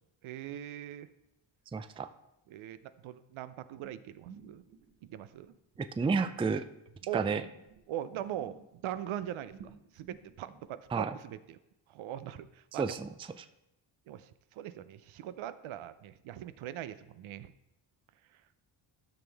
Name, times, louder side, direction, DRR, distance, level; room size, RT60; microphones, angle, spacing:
voice 1, 0.2-1.1 2.5-4.6 5.1-5.5 7.1-7.2 7.9-11.6 11.9-13.0 14.1-14.3 14.6-17.5, right 11 dB, 70° right, 13 dB, 0.7 m, -41 dB
voice 2, 1.7-2.1 5.8-6.6 7.1-7.4 10.9-11.2 12.8-13.1 13.4-13.5, right 5 dB, 10° right, 11 dB, 0.4 m, -31 dB
sound 1, 3.8-7.8 8.1-10.9, right 7 dB, 85° right, 1.4 m, -54 dB
13.0 x 6.2 x 3.4 m, 0.89 s
cardioid pair, 85°, 50 cm